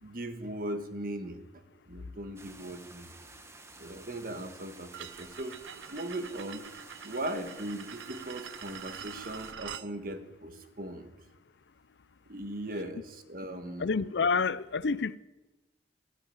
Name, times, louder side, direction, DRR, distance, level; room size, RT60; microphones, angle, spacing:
voice 1, 0.0-1.4 1.9-3.2 3.8-5.6 5.9-6.7 7.0-11.1 12.3-13.9, right 1 dB, 50° right, 1.5 m, -39 dB
sound 1, 2.4-9.5, right 3 dB, 15° right, 1.0 m, -52 dB
sound 2, 4.9-9.9, right 8 dB, 85° right, 0.6 m, -45 dB
voice 2, 13.8-15.2, left 5 dB, 75° left, 0.5 m, -28 dB
13.0 x 11.0 x 9.8 m
head